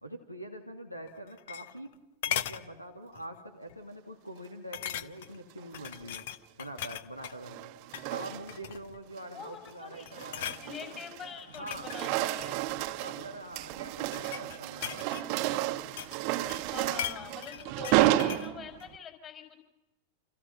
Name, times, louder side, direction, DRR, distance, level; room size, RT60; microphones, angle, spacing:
voice 1, 0.0-1.9 2.2-6.3 6.6-7.7 8.1-10.6 10.9-11.0 11.5-11.9 13.0-15.1, right 1 dB, 90° left, 7 dB, 2.6 m, -44 dB
sound 1, 1.1-1.9 2.2-2.6 3.2-3.4 3.7-3.8 4.7-5.4 5.7-7.4 7.8-8.1 8.5-9.0 9.5-9.8 10.1-10.6 11.4-13.0 13.8-16.2 16.5-18.5 18.8-18.9, left 10 dB, 55° left, 1.1 m, -38 dB
sound 2, 5.6-6.1 7.2-8.7 9.2-9.5 9.9-11.4 11.6-19.0, right 15 dB, 45° right, 1.1 m, -32 dB
voice 2, 9.3-12.6 16.7-19.6, left 8 dB, 30° left, 5 dB, 6.2 m, -45 dB
29.0 x 28.5 x 5.7 m, 1.0 s
figure-of-eight pair, 90°, 0 cm